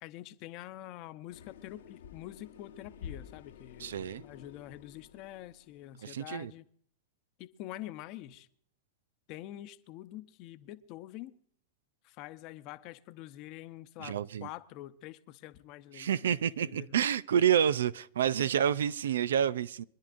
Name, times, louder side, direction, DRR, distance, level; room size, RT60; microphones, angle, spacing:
voice 1, 0.0-6.6 7.4-8.5 9.3-11.3 12.0-17.0 18.4-18.5, left 14 dB, 50° left, 0.8 m, -46 dB
sound 1, 1.3-5.9, left 8 dB, 80° left, 1.2 m, -50 dB
voice 2, 3.8-4.2 6.0-6.5 14.0-14.5 15.9-19.8, right 9 dB, 80° right, 0.4 m, -29 dB
25.0 x 10.5 x 2.6 m
hypercardioid pair, 110°, 0 cm